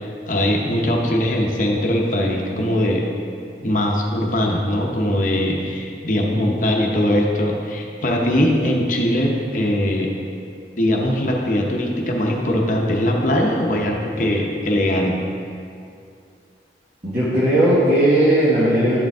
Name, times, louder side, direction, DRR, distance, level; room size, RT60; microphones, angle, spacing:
voice 1, 0.0-3.0 3.6-10.1 10.8-15.2, left 1 dB, 45° left, 0 dB, 0.8 m, -21 dB
voice 2, 17.0-19.0, right 1 dB, 35° right, -8 dB, 1.2 m, -17 dB
11.5 x 5.1 x 3.5 m, 2.5 s
head